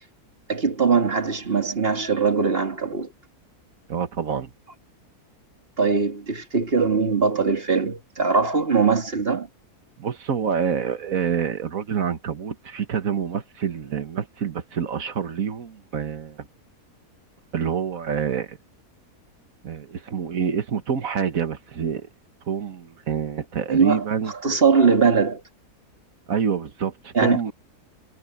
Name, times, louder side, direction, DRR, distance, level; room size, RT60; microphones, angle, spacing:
voice 1, 0.5-3.1 5.8-9.5 23.7-25.4 27.1-27.4, right 5 dB, 40° right, 2.4 m, -21 dB
voice 2, 3.9-4.5 10.0-16.4 17.5-18.6 19.6-22.1 22.5-24.3 26.3-27.5, right 7 dB, 65° right, 1.8 m, -27 dB
omnidirectional pair, 1.6 m